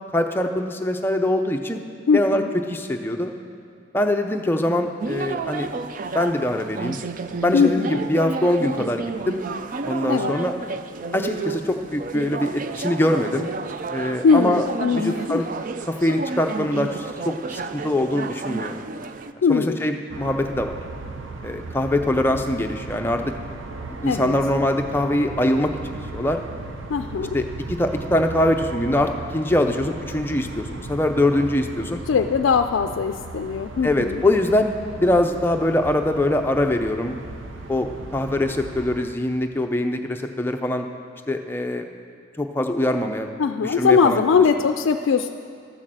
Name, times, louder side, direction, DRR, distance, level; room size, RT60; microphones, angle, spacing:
voice 1, 0.1-1.8 2.1-2.4 2.7-3.3 3.9-5.7 6.1-7.0 7.4-9.4 9.9-10.5 11.1-13.5 13.9-14.6 14.9-15.5 15.9-18.8 19.5-20.8 21.4-23.3 24.0-26.4 27.3-32.0 33.8-37.2 37.7-40.9 41.3-41.9 42.4-43.3 43.6-44.2, left 1 dB, 10° left, 4 dB, 0.5 m, -23 dB
voice 2, 2.1-2.5 7.5-8.0 10.1-10.4 14.2-15.4 19.4-19.8 24.1-24.3 26.9-27.4 32.1-34.2 43.4-45.3, left 5 dB, 80° left, 6 dB, 0.4 m, -20 dB
sound 1, 5.0-19.3, right 4 dB, 45° right, 0.4 m, -31 dB
sound 2, 20.1-39.1, right 3 dB, 75° right, 0.7 m, -36 dB
12.5 x 6.4 x 7.5 m, 2.4 s
head